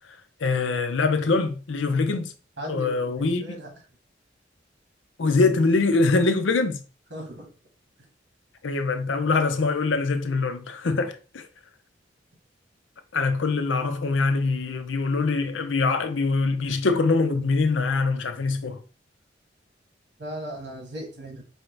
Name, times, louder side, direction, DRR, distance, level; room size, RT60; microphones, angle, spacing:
voice 1, 0.4-2.3 2.7-3.4 5.2-6.8 8.6-11.5 13.1-18.8, left 3 dB, 85° left, 0.6 m, -23 dB
voice 2, 2.6-3.7 7.1-7.5 20.2-21.4, equal, 65° right, 1.6 m, -37 dB
4.7 x 2.8 x 3.2 m
head